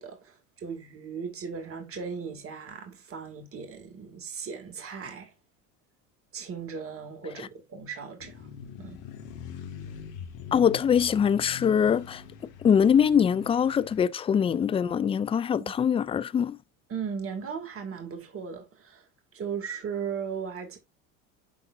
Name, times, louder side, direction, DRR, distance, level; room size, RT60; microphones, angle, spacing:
voice 1, 0.0-5.3 6.3-8.5 8.8-9.0 15.6-15.7 16.9-19.0 19.3-20.8, right 6 dB, 30° right, 2.4 m, -37 dB
sound 1, 8.2-14.0, left 7 dB, 70° left, 2.1 m, -43 dB
voice 2, 10.5-12.2 12.6-16.6, left 8 dB, 15° left, 0.3 m, -23 dB
11.0 x 3.9 x 2.6 m
hypercardioid pair, 90°, 41 cm